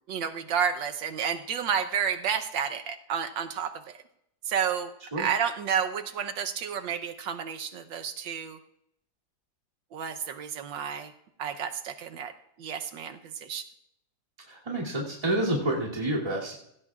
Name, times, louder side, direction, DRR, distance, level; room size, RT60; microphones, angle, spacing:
voice 1, 0.1-3.7 4.5-4.9 5.2-8.6 9.9-11.1 11.4-12.3 12.6-13.6, right 7 dB, 75° right, 7 dB, 1.6 m, -30 dB
voice 2, 14.4-16.6, right 1 dB, 15° right, -4 dB, 2.7 m, -29 dB
18.0 x 16.5 x 2.4 m, 0.76 s
omnidirectional pair, 2.1 m